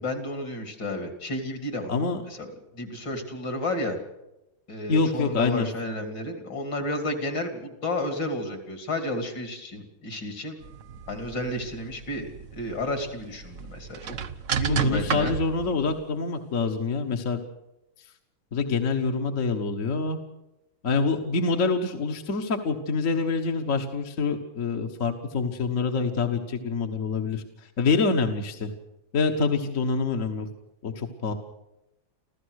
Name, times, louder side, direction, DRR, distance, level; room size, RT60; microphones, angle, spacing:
voice 1, 0.0-1.9 2.3-2.5 2.7-4.0 4.7-10.6 11.1-14.2 14.5-15.3, left 1 dB, 65° left, 6 dB, 3.6 m, -32 dB
voice 2, 1.9-2.2 4.9-5.7 14.7-17.4 18.5-20.2 20.8-28.7 29.1-30.5 30.8-31.3, left 4 dB, 45° left, 3 dB, 1.6 m, -26 dB
sound 1, 10.6-16.0, right 7 dB, 50° right, 1.0 m, -33 dB
26.5 x 15.5 x 6.5 m, 0.91 s
omnidirectional pair, 2.1 m